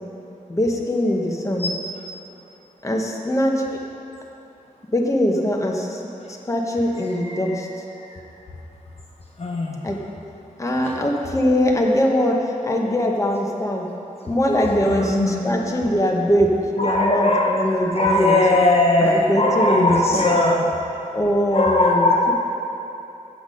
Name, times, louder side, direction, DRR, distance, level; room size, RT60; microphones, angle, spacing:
voice 1, 0.5-1.7 2.8-3.6 4.9-6.0 6.3-7.7 9.8-10.0 10.6-13.8 14.2-18.4 19.0-20.4 21.1-22.3, equal, 20° left, 0 dB, 1.1 m, -22 dB
voice 2, 9.4-9.8 14.8-15.4 16.8-17.6 17.9-20.7 21.5-22.3, left 2 dB, 45° left, -1 dB, 0.9 m, -19 dB
8.1 x 8.0 x 5.3 m, 2.9 s
wide cardioid pair, 80°, 14 cm